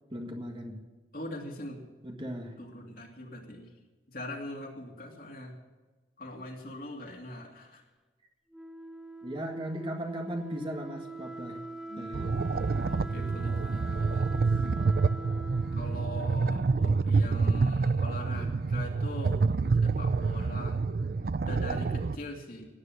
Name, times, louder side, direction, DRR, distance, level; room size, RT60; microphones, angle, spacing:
voice 1, 0.1-0.8 2.0-2.6 9.2-11.6 12.0-12.4, equal, 25° right, 2 dB, 1.7 m, -37 dB
voice 2, 1.1-1.9 2.6-3.7 4.1-5.6 6.2-7.8 11.9-14.3 15.7-19.4 19.8-20.8 21.4-22.7, left 1 dB, 50° left, 1 dB, 2.7 m, -42 dB
Wind instrument woodwind instrument, 8.5-17.3, right 2 dB, 5° right, 0.6 m, -44 dB
sound 1, 12.1-22.2, right 4 dB, 55° right, 0.4 m, -27 dB
17.5 x 9.7 x 6.5 m, 1.2 s
head